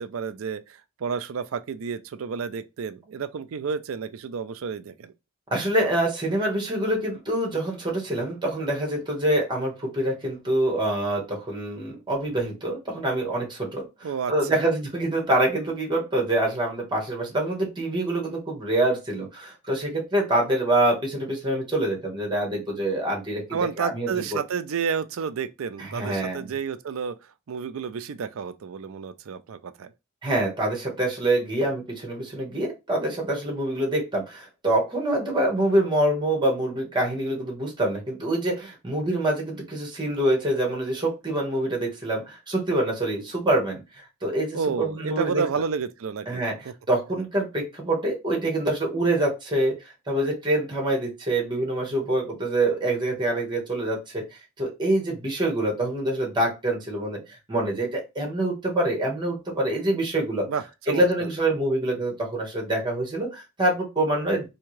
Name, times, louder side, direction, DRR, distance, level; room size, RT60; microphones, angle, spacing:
voice 1, 0.0-5.1 14.0-14.6 23.5-27.2 27.5-29.9 44.5-46.7 60.5-61.3, right 6 dB, 70° right, 0.4 m, -31 dB
voice 2, 5.5-24.4 25.8-26.5 30.2-45.4 46.3-54.2 54.6-60.5 60.9-64.5, right 1 dB, 20° right, 1.4 m, -26 dB
3.5 x 2.8 x 3.1 m
head